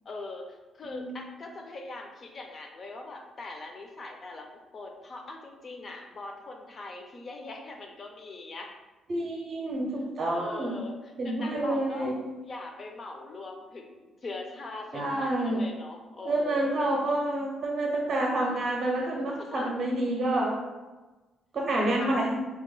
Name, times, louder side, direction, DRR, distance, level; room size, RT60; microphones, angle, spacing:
voice 1, 0.0-8.7 10.3-12.1 12.4-16.8 19.3-19.7 22.0-22.3, left 2 dB, 45° left, 2 dB, 0.5 m, -41 dB
voice 2, 0.8-1.2 9.1-10.8 11.2-12.1 14.9-15.6 16.2-20.6 21.5-22.4, right 1 dB, 50° right, -2 dB, 0.6 m, -28 dB
2.8 x 2.0 x 3.9 m, 1.2 s
cardioid pair, 90°, 0 cm